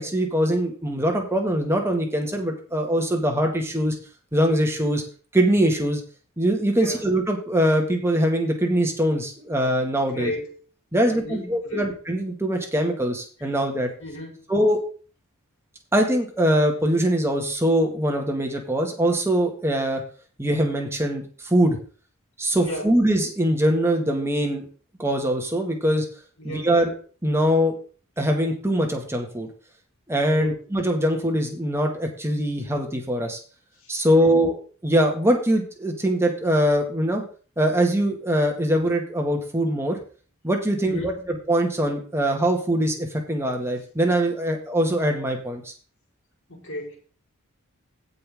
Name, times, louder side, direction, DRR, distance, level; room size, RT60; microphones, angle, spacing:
voice 1, 0.0-4.0 4.3-5.0 5.3-6.0 6.4-10.3 10.9-13.9 14.5-14.8 15.9-20.0 20.4-21.8 22.4-24.7 25.0-26.1 26.4-26.9 27.2-27.7 28.2-29.5 30.1-33.4 33.9-37.2 37.6-40.0 40.4-41.0 41.5-45.7, equal, 10° right, 1.9 m, -22 dB
voice 2, 10.1-10.6 11.0-11.9 14.0-14.4 22.6-22.9 26.4-26.7 30.4-30.6 33.8-34.3 40.8-41.3 46.5-47.0, left 1 dB, 60° left, 3.9 m, -34 dB
16.0 x 5.6 x 3.6 m
head